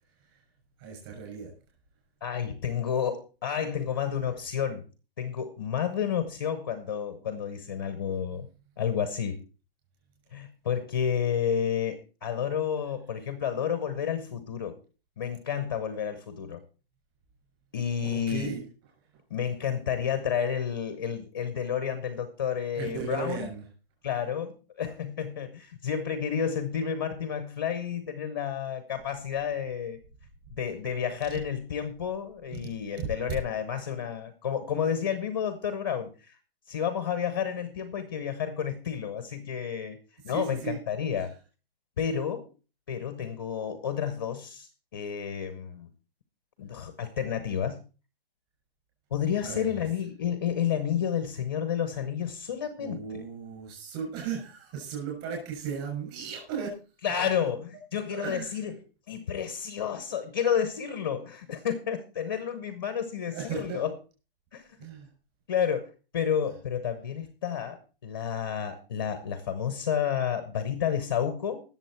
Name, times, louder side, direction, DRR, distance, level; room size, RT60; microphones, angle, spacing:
voice 1, 0.8-1.5 18.0-18.6 22.7-23.6 31.2-31.4 32.5-32.7 33.0-33.1 40.3-40.8 41.2-41.3 49.4-49.8 52.8-56.8 57.2-57.5 58.1-58.5 63.3-63.9 64.8-65.1, right 6 dB, 25° right, 1 dB, 6.0 m, -36 dB
voice 2, 2.2-4.9 5.2-8.5 8.8-9.4 10.3-14.8 15.2-16.6 17.7-18.6 19.3-23.5 24.0-30.0 30.5-36.4 36.7-40.0 40.2-41.3 42.0-42.5 42.9-45.9 46.6-47.8 49.1-53.2 57.0-58.8 59.1-63.9 64.5-64.6 65.5-71.6, left 8 dB, 25° left, 11 dB, 0.6 m, -30 dB
19.0 x 7.1 x 4.3 m, 0.34 s
hypercardioid pair, 180°, 30 cm